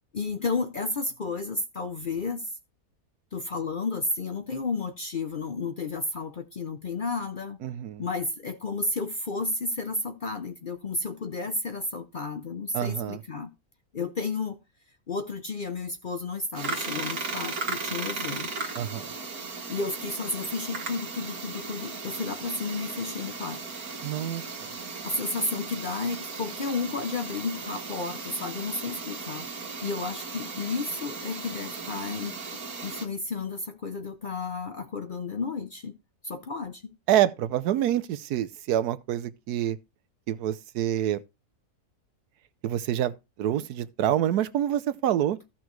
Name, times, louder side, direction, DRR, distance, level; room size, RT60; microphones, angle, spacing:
voice 1, 0.1-2.5 3.3-7.6 8.0-13.5 13.9-14.6 15.1-18.5 19.7-23.6 25.0-29.5 29.8-32.4 32.8-36.0 36.2-36.8, left 3 dB, 50° left, 0.6 m, -32 dB
voice 2, 7.6-8.0 12.7-13.2 18.7-19.1 24.0-24.7 37.1-39.8 40.3-41.2 42.6-45.4, right 11 dB, 85° right, 1.2 m, -27 dB
sound 1, 16.6-33.1, right 4 dB, 70° right, 2.1 m, -36 dB
14.5 x 5.8 x 3.1 m
omnidirectional pair, 1.6 m